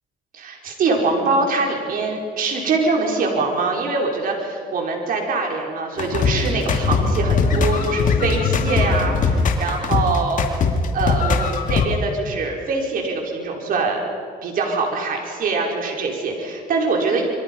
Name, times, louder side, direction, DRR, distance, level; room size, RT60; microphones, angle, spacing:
voice 1, 0.3-10.4 10.9-14.0 14.4-17.3, right 3 dB, 55° right, 1 dB, 5.2 m, -23 dB
sound 1, 6.0-11.9, left 5 dB, 50° left, 2.8 m, -20 dB
28.5 x 23.5 x 5.6 m, 2.2 s
cardioid pair, 110°, 17 cm